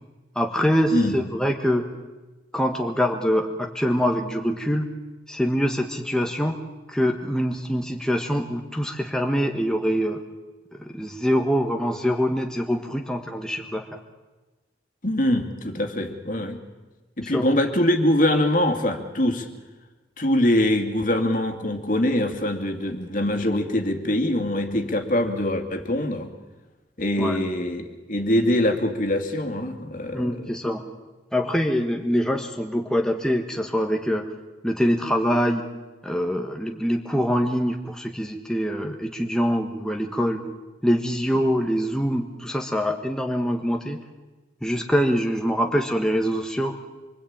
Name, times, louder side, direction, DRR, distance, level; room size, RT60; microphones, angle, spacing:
voice 1, 0.3-1.9 2.5-4.9 5.3-6.6 6.9-10.2 10.7-14.0 17.2-17.4 27.2-27.4 30.1-30.9 31.3-34.3 34.6-35.6 36.0-40.5 40.8-44.0 44.6-46.8, equal, 5° left, 3 dB, 1.5 m, -24 dB
voice 2, 15.0-16.6 17.2-19.5 20.2-26.3 27.0-30.5, left 1 dB, 45° left, 5 dB, 2.5 m, -23 dB
26.5 x 24.0 x 8.8 m, 1.2 s
head